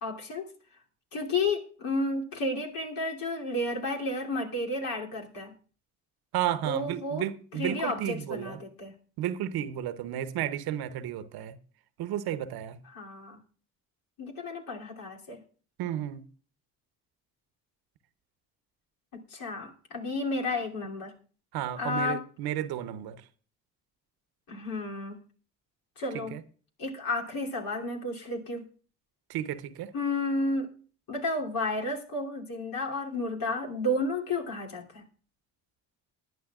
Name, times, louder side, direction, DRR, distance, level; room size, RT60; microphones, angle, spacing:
voice 1, 0.0-0.5 1.1-5.5 6.6-7.2 7.5-8.9 12.9-13.4 14.2-15.4 19.3-21.1 21.8-22.2 24.5-25.2 26.0-26.4 26.8-28.6 29.9-30.7 31.1-35.0, left 2 dB, 60° left, 3.1 m, -32 dB
voice 2, 6.3-8.6 9.2-11.6 12.0-12.8 15.8-16.3 21.5-23.2 26.1-26.4 29.3-29.9, right 11 dB, 70° right, 1.0 m, -32 dB
20.0 x 11.0 x 2.5 m
hypercardioid pair, 50°, 39 cm